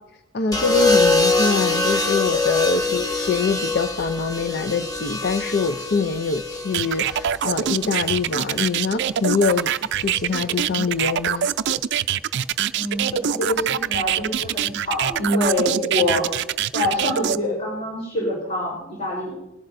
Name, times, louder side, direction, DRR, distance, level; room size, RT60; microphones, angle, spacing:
voice 1, 0.3-11.5, left 4 dB, 55° left, 8 dB, 0.5 m, -24 dB
sound 1, 0.5-8.7 9.9-10.3, left 3 dB, 20° left, 1.1 m, -23 dB
sound 2, 6.7-17.4, right 10 dB, 60° right, 0.4 m, -24 dB
voice 2, 12.7-16.3 16.7-19.4, left 1 dB, 35° left, -4 dB, 3.9 m, -25 dB
19.5 x 11.5 x 2.6 m, 0.96 s
head